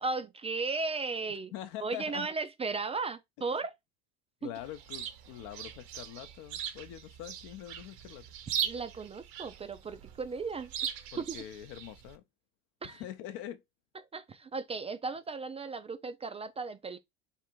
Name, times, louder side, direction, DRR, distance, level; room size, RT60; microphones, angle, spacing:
voice 1, 0.0-1.5 1.8-3.7 8.6-11.2 12.8-13.0 14.1-17.0, right 4 dB, 20° right, 0.4 m, -36 dB
voice 2, 1.5-2.3 4.4-8.3 11.1-12.2 12.8-13.6, left 12 dB, 65° left, 0.8 m, -44 dB
Chirp tweet, 4.5-12.2, right 9 dB, 65° right, 0.9 m, -40 dB
3.5 x 2.6 x 4.4 m
hypercardioid pair, 90°, 33 cm